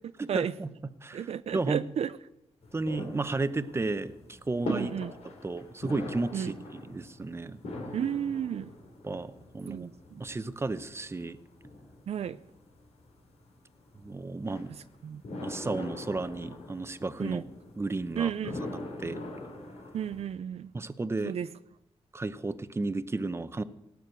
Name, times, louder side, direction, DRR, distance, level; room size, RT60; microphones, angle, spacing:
voice 1, 0.2-0.7 1.0-1.8 2.7-4.9 5.2-7.6 9.0-9.9 10.2-11.4 14.0-14.7 15.4-17.4 17.8-18.3 18.7-19.2 20.7-21.3 22.1-23.6, right 3 dB, 25° right, 12 dB, 0.8 m, -33 dB
voice 2, 1.1-2.1 4.7-5.1 6.3-6.5 7.9-8.7 9.7-10.2 12.1-12.4 15.0-15.2 17.2-17.4 18.2-18.6 19.9-20.7 21.2-21.5, right 9 dB, 70° right, 13 dB, 0.5 m, -32 dB
sound 1, 2.6-20.2, left 1 dB, 90° left, 3.8 m, -42 dB
17.5 x 9.4 x 6.8 m, 0.87 s
cardioid pair, 90°, 11 cm